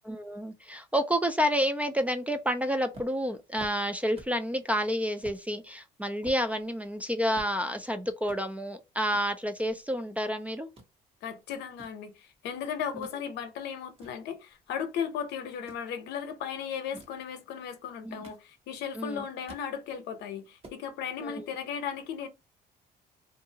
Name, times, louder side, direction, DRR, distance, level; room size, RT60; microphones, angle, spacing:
voice 1, 0.0-10.7 13.0-13.1 18.0-18.2 19.0-19.3 21.2-21.4, equal, 10° right, 0.3 m, -29 dB
sound 1, 2.9-4.5 4.8-4.9 5.2-5.4 5.9-7.9 8.2-8.4 9.1-10.3 10.5-10.9 11.5-13.2 13.6-14.9 15.5-15.9 16.7-17.2 17.9-18.8 19.2-19.7 20.1-20.2 20.4-20.8, right 2 dB, 35° right, 1.1 m, -51 dB
voice 2, 11.2-22.3, left 8 dB, 80° left, 0.7 m, -36 dB
2.6 x 2.4 x 2.7 m
cardioid pair, 110°, 17 cm